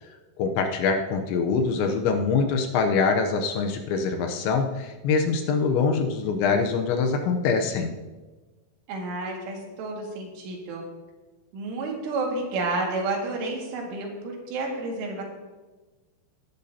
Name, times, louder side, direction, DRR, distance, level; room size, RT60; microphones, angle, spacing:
voice 1, 0.4-7.9, left 5 dB, 80° left, 4 dB, 3.0 m, -24 dB
voice 2, 8.9-10.8 11.5-15.2, right 3 dB, 80° right, -1 dB, 4.5 m, -30 dB
19.0 x 10.5 x 2.8 m, 1.2 s
omnidirectional pair, 5.4 m